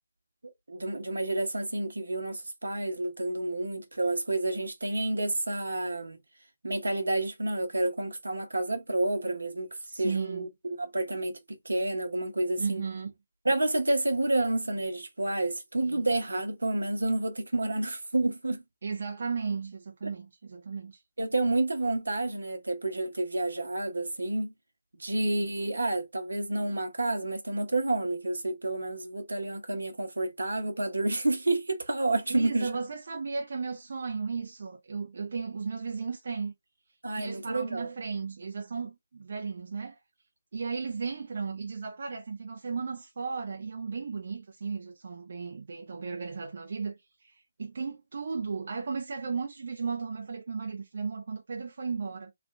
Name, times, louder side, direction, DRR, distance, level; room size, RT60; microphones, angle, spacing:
voice 1, 0.7-6.2 6.6-9.7 10.0-12.8 13.4-18.6 20.0-20.1 21.2-24.5 25.0-32.7 37.0-37.9, right 2 dB, 80° right, 1.2 m, -29 dB
voice 2, 9.8-10.5 12.6-13.1 15.8-16.1 18.8-21.0 32.3-36.5 37.2-40.0 40.5-52.3, right 5 dB, 55° right, 0.8 m, -35 dB
3.3 x 2.6 x 3.3 m
figure-of-eight pair, 150°, 0 cm